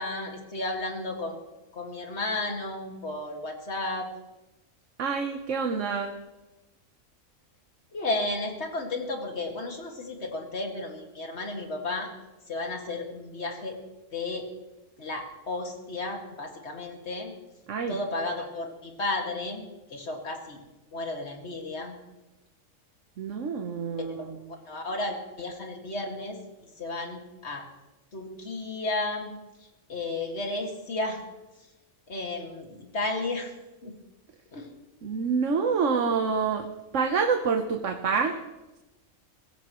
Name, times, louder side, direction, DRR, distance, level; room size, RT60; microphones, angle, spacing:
voice 1, 0.0-1.4 1.7-4.1 7.9-12.1 12.5-13.8 14.1-14.5 15.0-17.3 17.9-19.6 19.9-20.6 20.9-22.0 24.0-24.2 24.7-26.4 26.8-27.6 28.1-29.3 29.9-31.2 32.1-33.5 33.8-33.9 34.5-34.7, left 2 dB, 55° left, 1 dB, 2.4 m, -33 dB
voice 2, 5.0-6.2 17.7-18.0 23.2-24.4 35.0-36.7 36.9-38.4, right 5 dB, 70° right, 4 dB, 1.3 m, -27 dB
22.0 x 16.5 x 3.1 m, 1.1 s
omnidirectional pair, 1.4 m